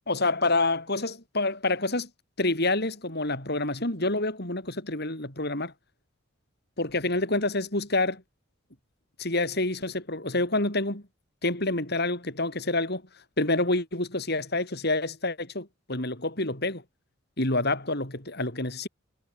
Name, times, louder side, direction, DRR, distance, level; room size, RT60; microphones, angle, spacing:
voice 1, 0.1-2.1 2.4-5.7 6.8-8.2 9.2-11.0 11.4-13.0 13.4-16.8 17.4-18.9, left 2 dB, 55° left, 6.9 m, -27 dB
head